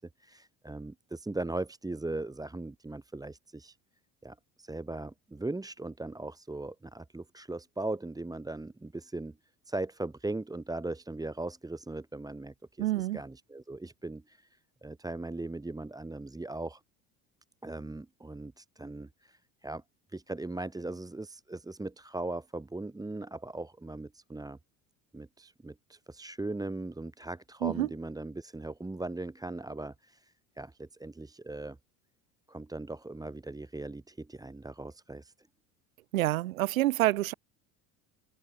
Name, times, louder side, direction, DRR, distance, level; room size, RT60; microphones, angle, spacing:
voice 1, 0.2-3.8 4.2-9.4 9.7-16.8 17.6-19.8 20.1-24.6 25.1-31.8 32.5-35.3, right 2 dB, 10° right, 1.3 m, -39 dB
voice 2, 12.8-13.2 27.6-27.9 36.1-37.3, right 16 dB, 90° right, 2.1 m, -27 dB
open air
hypercardioid pair, 80°, 40 cm